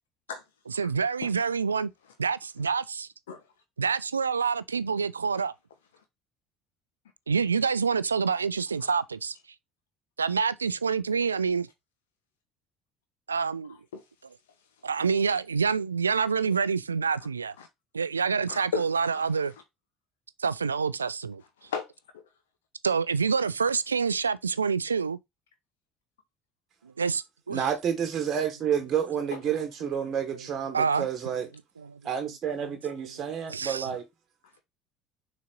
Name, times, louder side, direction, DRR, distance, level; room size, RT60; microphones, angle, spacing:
voice 1, 0.7-1.9 2.2-3.1 3.8-5.5 7.3-9.4 10.2-11.7 13.3-13.8 14.8-17.5 17.9-19.5 20.4-21.4 22.8-25.2 26.8-27.7 30.7-31.1 31.8-32.0 33.5-33.9, right 5 dB, 80° right, 0.3 m, -27 dB
voice 2, 18.5-18.8 19.1-19.2 21.6-22.2, left 7 dB, 75° left, 1.1 m, -34 dB
voice 3, 27.5-31.5 32.0-34.1, right 8 dB, 40° right, 1.3 m, -29 dB
6.4 x 4.1 x 3.7 m
figure-of-eight pair, 60°, 0 cm